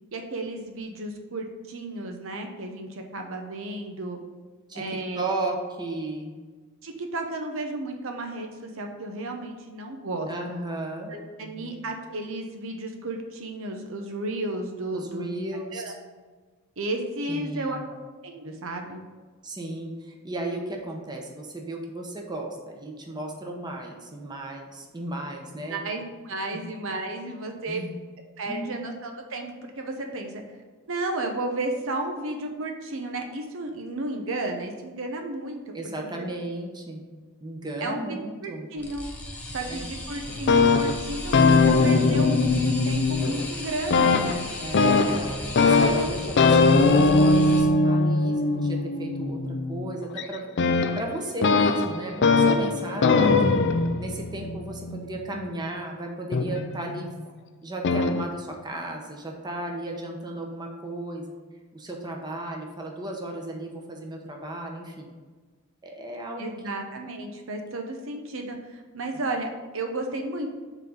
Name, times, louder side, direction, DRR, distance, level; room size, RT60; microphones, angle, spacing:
voice 1, 0.1-4.2 4.7-5.2 6.8-10.3 11.1-15.4 15.7-15.9 16.8-17.8 18.2-19.0 25.7-27.8 28.4-30.4 30.9-35.6 37.8-39.1 39.5-44.5 52.7-53.1 66.4-70.5, right 2 dB, 70° right, 3 dB, 0.8 m, -33 dB
voice 2, 5.1-6.3 10.3-11.1 11.4-11.7 14.9-15.9 17.3-17.9 19.4-25.8 26.5-26.6 27.2-27.4 27.7-28.0 28.5-28.8 35.7-37.0 37.4-38.7 39.7-39.8 44.6-50.5 50.9-53.6 54.0-57.1 57.6-61.3 61.7-65.1 65.8-66.5, right 1 dB, 20° right, 1 dB, 1.0 m, -35 dB
sound 1, 38.8-47.6, left 1 dB, 10° left, 1.2 m, -36 dB
sound 2, 40.3-43.6 43.9-55.5 56.3-57.1 57.8-58.2, left 3 dB, 55° left, 0.5 m, -21 dB
7.3 x 3.9 x 5.3 m, 1.4 s
head